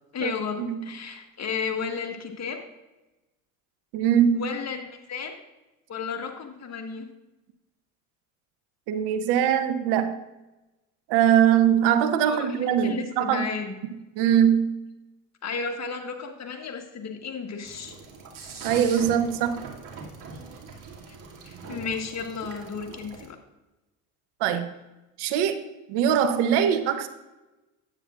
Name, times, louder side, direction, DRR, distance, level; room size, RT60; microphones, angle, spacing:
voice 1, 0.1-2.6 4.3-5.4 5.9-7.0 12.2-12.5 12.8-13.7 15.4-17.9 21.4-23.4, left 5 dB, 40° left, 3 dB, 1.5 m, -33 dB
voice 2, 3.9-4.4 8.9-10.1 11.1-13.5 14.2-14.8 18.6-19.6 24.4-24.7 25.2-25.6 25.9-27.1, right 9 dB, 75° right, 10 dB, 0.9 m, -22 dB
sound 1, 17.6-23.3, right 4 dB, 50° right, 2.5 m, -41 dB
9.7 x 8.7 x 2.4 m, 1.0 s
supercardioid pair, 80°, 40 cm